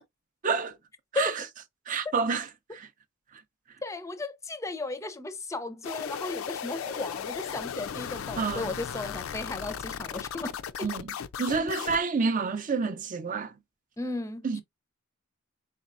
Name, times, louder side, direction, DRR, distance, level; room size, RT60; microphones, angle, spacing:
voice 1, 0.4-0.8 1.1-1.4 1.9-2.9 3.3-3.4 8.4-8.7 10.8-11.1 11.4-13.5 14.4-14.6, right 5 dB, 40° right, 0.5 m, -29 dB
voice 2, 3.8-10.9 14.0-14.6, left 3 dB, 15° left, 0.5 m, -35 dB
sound 1, 5.8-12.0, left 8 dB, 75° left, 0.4 m, -36 dB
4.2 x 4.1 x 2.5 m
head